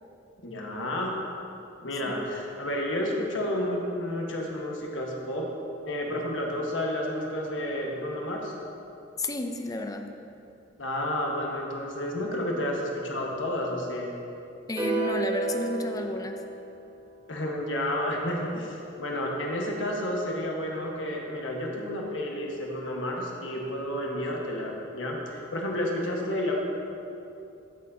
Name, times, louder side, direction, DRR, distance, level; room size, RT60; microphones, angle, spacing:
voice 1, 0.4-1.1 1.8-5.5 5.9-8.5 10.8-14.1 17.3-26.5, left 1 dB, 70° left, -1 dB, 1.3 m, -31 dB
voice 2, 9.2-10.1 14.7-16.4, left 2 dB, 20° left, 5 dB, 0.5 m, -32 dB
sound 1, 14.8-17.1, right 2 dB, 25° right, 1.5 m, -31 dB
14.5 x 6.8 x 2.7 m, 2.8 s
head